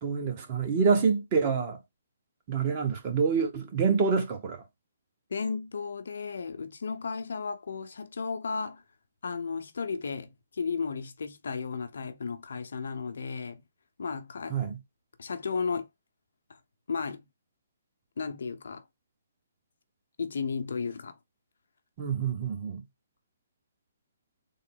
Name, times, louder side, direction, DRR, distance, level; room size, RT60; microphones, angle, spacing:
voice 1, 0.0-1.8 2.5-4.6 14.5-14.8 22.0-22.8, right 5 dB, 35° right, 1.1 m, -27 dB
voice 2, 5.3-8.8 9.2-13.6 14.0-14.6 15.2-15.9 16.5-16.6 16.9-17.3 18.2-18.8 20.2-21.2, left 5 dB, 75° left, 0.7 m, -34 dB
3.7 x 2.0 x 3.8 m
hypercardioid pair, 145°, 0 cm